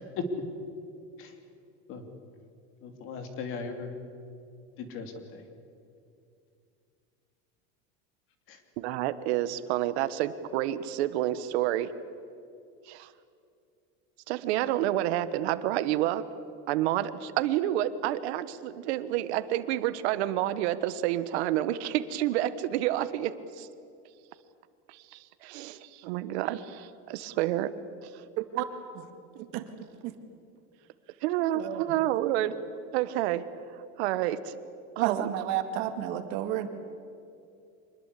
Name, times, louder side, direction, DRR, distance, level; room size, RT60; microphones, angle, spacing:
voice 1, 2.8-3.9 4.8-5.4 8.5-8.6, left 5 dB, 40° left, 6 dB, 2.9 m, -38 dB
voice 2, 8.8-11.9 12.9-13.1 14.3-16.2 16.7-23.7 24.9-27.7 28.0-28.1 31.2-32.6 32.9-33.4 34.0-34.5 35.0-35.3, right 13 dB, 85° right, 13 dB, 1.3 m, -29 dB
voice 3, 29.3-29.7 30.0-30.1 31.5-32.0 35.0-36.7, right 11 dB, 60° right, 8 dB, 2.2 m, -32 dB
25.5 x 20.5 x 8.3 m, 2.5 s
cardioid pair, 170°, 32 cm